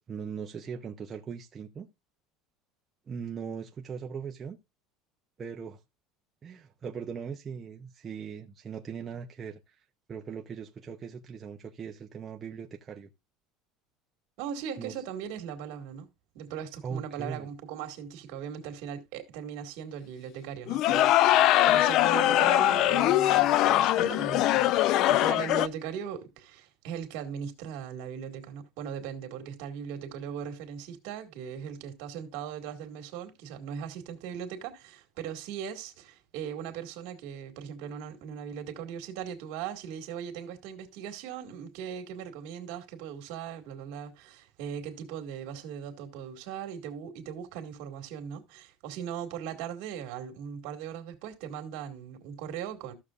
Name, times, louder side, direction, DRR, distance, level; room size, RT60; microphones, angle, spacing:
voice 1, 0.0-1.9 3.1-4.6 5.4-5.8 6.4-13.1 14.8-15.0 16.8-17.5, right 6 dB, 20° right, 0.6 m, -39 dB
voice 2, 14.4-16.1 16.3-52.9, right 8 dB, 65° right, 2.0 m, -39 dB
sound 1, 20.7-25.7, left 14 dB, 45° left, 0.4 m, -22 dB
14.5 x 6.6 x 2.4 m
cardioid pair, 170°, 0 cm